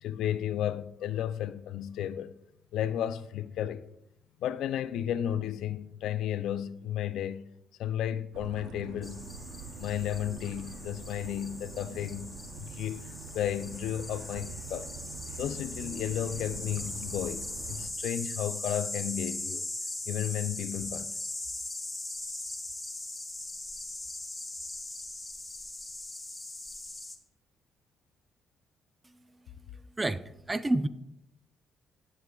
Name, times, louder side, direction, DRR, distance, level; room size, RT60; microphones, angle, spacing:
voice 1, 0.0-2.3 2.7-3.9 4.4-7.4 7.8-9.2 9.7-12.3 12.6-14.9 15.4-19.6 20.1-21.1, left 10 dB, 85° left, 0.4 m, -33 dB
sound 1, 8.3-17.9, right 6 dB, 90° right, 0.7 m, -45 dB
sound 2, 9.0-27.2, left 2 dB, 10° left, 1.1 m, -40 dB
voice 2, 30.0-30.9, right 2 dB, 20° right, 0.5 m, -29 dB
12.5 x 7.9 x 2.3 m
cardioid pair, 90°, 0 cm